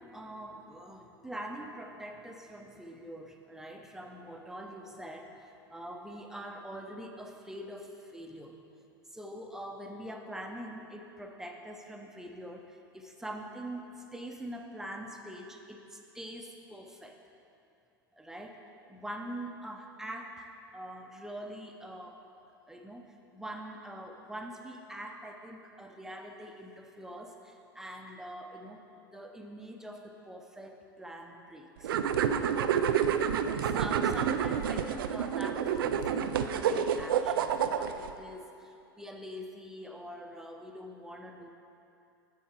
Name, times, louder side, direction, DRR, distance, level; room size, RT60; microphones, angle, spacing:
voice 1, 0.0-8.6 9.1-17.2 18.1-18.6 18.9-22.2 22.7-31.9 33.2-41.5, right 1 dB, 5° right, 2 dB, 0.8 m, -44 dB
sound 1, 31.8-38.1, right 8 dB, 75° right, 0.4 m, -29 dB
7.3 x 7.1 x 4.5 m, 2.7 s
hypercardioid pair, 90°, 12 cm